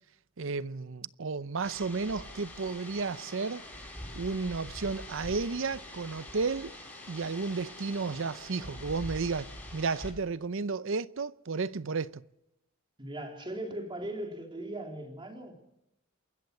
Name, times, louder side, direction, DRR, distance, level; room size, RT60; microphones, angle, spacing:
voice 1, 0.4-3.6 4.1-6.7 7.1-12.2, right 4 dB, 70° right, 0.7 m, -33 dB
sound 1, 1.6-10.1, left 1 dB, 10° left, 7.6 m, -45 dB
voice 2, 13.0-15.6, right 1 dB, 25° right, 3.8 m, -39 dB
28.0 x 14.5 x 6.9 m
head